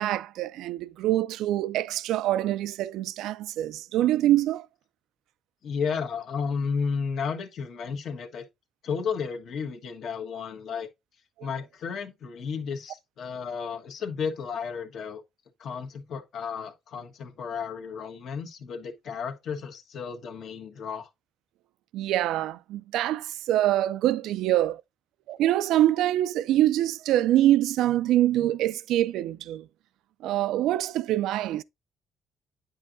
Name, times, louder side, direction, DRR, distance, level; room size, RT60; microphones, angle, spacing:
voice 1, 0.0-4.7 21.9-24.8 25.3-29.6 30.2-31.6, right 13 dB, 90° right, 0.3 m, -25 dB
voice 2, 5.6-8.4 8.8-10.9 11.4-15.2 15.6-21.1, left 6 dB, 70° left, 1.4 m, -33 dB
9.1 x 5.4 x 2.6 m
cardioid pair, 90°, 0 cm